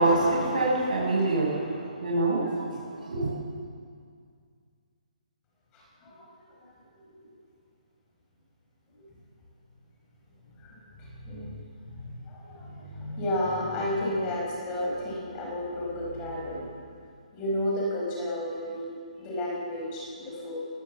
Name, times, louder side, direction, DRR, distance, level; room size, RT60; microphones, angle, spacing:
voice 1, 0.0-1.7 2.0-2.4 3.0-3.3, right 2 dB, 70° right, -4 dB, 7.5 m, -24 dB
voice 2, 10.6-11.6 12.0-16.7 17.3-20.6, left 1 dB, 15° left, -3 dB, 5.3 m, -32 dB
21.0 x 20.0 x 7.6 m, 2.2 s
hypercardioid pair, 175°, 4 cm